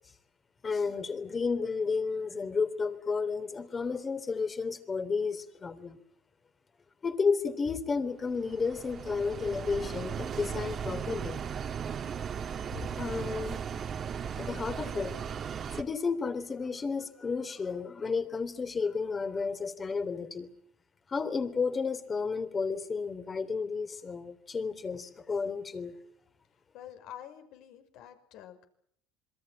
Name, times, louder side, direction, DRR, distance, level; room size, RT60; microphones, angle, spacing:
voice 1, 0.6-6.0 7.0-11.4 12.7-13.6 14.4-15.2 15.7-20.5 21.1-26.0, left 5 dB, 25° left, 10 dB, 3.3 m, -32 dB
sound 1, 8.2-15.8, right 7 dB, 35° right, 2.5 m, -37 dB
voice 2, 26.7-28.6, left 10 dB, 65° left, 7 dB, 5.8 m, -48 dB
27.0 x 23.0 x 7.6 m, 0.67 s
supercardioid pair, 115°, 0 cm